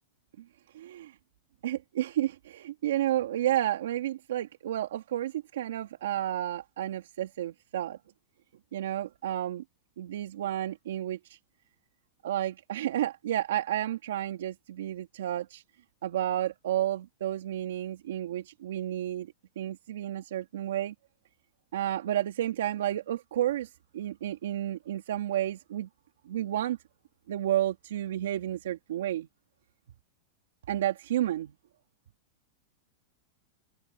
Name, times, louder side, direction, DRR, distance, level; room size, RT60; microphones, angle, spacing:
voice 1, 0.7-1.2 1.6-8.0 8.7-9.6 10.0-11.4 12.2-15.6 16.0-20.9 21.7-25.9 26.3-26.8 27.3-29.3 30.7-31.5, right 12 dB, 85° right, 2.5 m, -31 dB
supercardioid pair, 165°, 0 cm